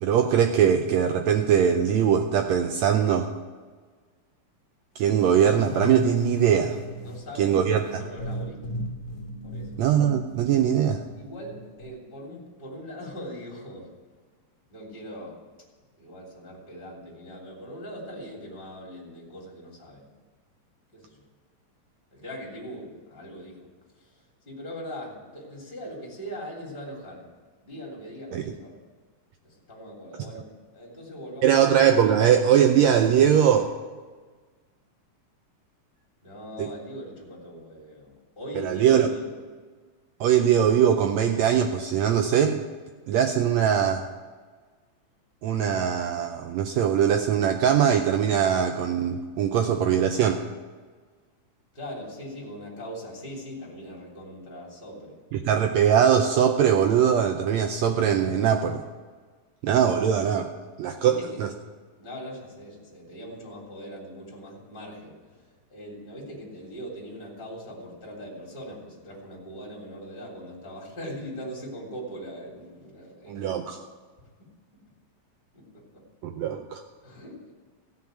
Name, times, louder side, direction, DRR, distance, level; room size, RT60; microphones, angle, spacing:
voice 1, 0.0-3.3 5.0-6.8 7.4-8.0 9.8-11.0 28.3-28.5 31.4-33.7 36.6-36.7 38.6-39.1 40.2-42.6 43.1-44.1 45.4-50.4 55.3-58.8 59.6-60.5 60.8-61.5 73.3-73.8 76.2-76.8, right 8 dB, 85° right, 5 dB, 1.5 m, -21 dB
sound 1, 5.1-11.9, right 1 dB, 60° left, 2.6 m, -37 dB
voice 2, 7.0-8.7 9.4-9.7 11.2-13.9 14.7-15.4 16.0-20.1 20.9-21.2 22.1-23.7 23.9-24.2 24.4-27.3 27.6-28.8 29.4-32.0 36.2-39.4 51.7-55.2 60.9-61.4 62.0-73.6 75.5-76.0 77.0-77.5, equal, 15° left, -3 dB, 3.0 m, -41 dB
15.0 x 5.8 x 8.9 m, 1.5 s
omnidirectional pair, 3.8 m